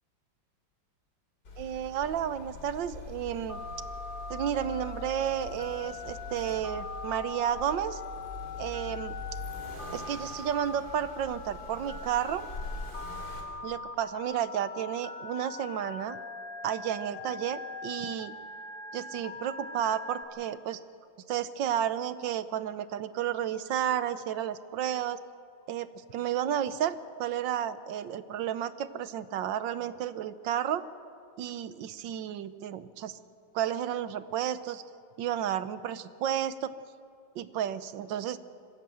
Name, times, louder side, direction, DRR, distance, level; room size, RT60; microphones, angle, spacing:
Accelerating revving vroom, 1.4-13.4, left 2 dB, 50° left, 3.7 m, -43 dB
voice 1, 1.6-3.6 4.3-8.0 8.6-9.2 9.9-12.5 13.6-16.2 16.6-18.3 18.9-20.8 21.3-25.2 25.7-30.8 31.4-33.2 33.5-34.8 35.2-36.7 37.3-38.4, right 10 dB, 75° right, 14 dB, 1.5 m, -32 dB
Telephone, 3.5-20.2, left 3 dB, 25° left, 1.8 m, -42 dB
25.5 x 16.0 x 7.8 m, 2.3 s
omnidirectional pair, 2.1 m